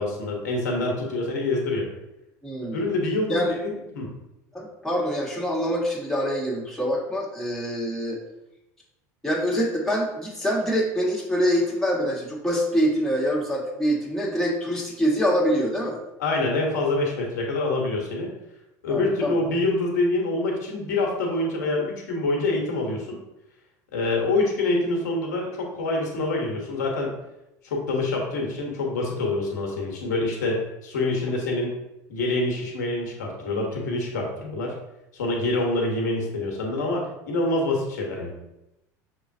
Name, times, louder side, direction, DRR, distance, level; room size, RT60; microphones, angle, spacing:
voice 1, 0.0-1.9 2.7-4.1 16.2-18.3 18.8-23.2 23.9-27.1 27.6-31.7 32.1-34.7 35.1-38.4, left 2 dB, 85° left, -1 dB, 1.1 m, -26 dB
voice 2, 2.4-2.9 3.3-3.6 4.5-8.2 9.2-16.0 18.9-19.3, equal, 5° left, -4 dB, 1.6 m, -25 dB
6.3 x 3.0 x 2.6 m, 0.91 s
supercardioid pair, 95°, 9 cm